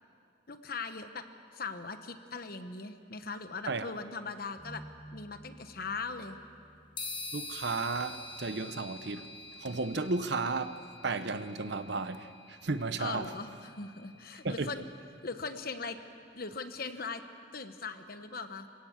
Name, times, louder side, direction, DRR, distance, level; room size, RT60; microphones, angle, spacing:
voice 1, 0.5-1.2 1.5-4.8 5.1-6.4 13.0-14.9 15.2-16.0 16.3-17.2 17.5-18.7, left 4 dB, 50° left, 9 dB, 1.1 m, -40 dB
sound 1, 4.6-11.6, right 1 dB, 10° right, 1.5 m, -56 dB
sound 2, 7.0-14.6, left 3 dB, 25° left, 1.5 m, -46 dB
voice 2, 7.3-9.3 9.6-13.3 14.4-14.7, right 3 dB, 60° right, 11 dB, 0.9 m, -34 dB
26.5 x 17.5 x 7.3 m, 2.3 s
head